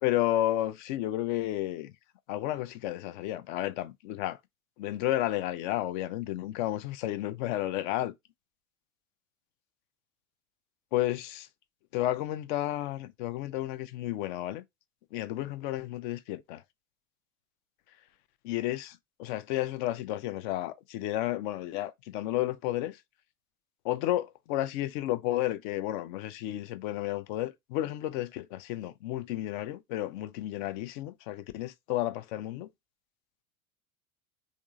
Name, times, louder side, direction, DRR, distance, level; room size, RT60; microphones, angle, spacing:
voice 1, 0.0-1.9 2.3-4.4 4.8-8.1 10.9-11.5 11.9-14.6 15.1-16.6 18.4-23.0 23.8-32.7, left 14 dB, 40° left, 0.4 m, -32 dB
3.5 x 2.5 x 2.6 m
figure-of-eight pair, 80°, 41 cm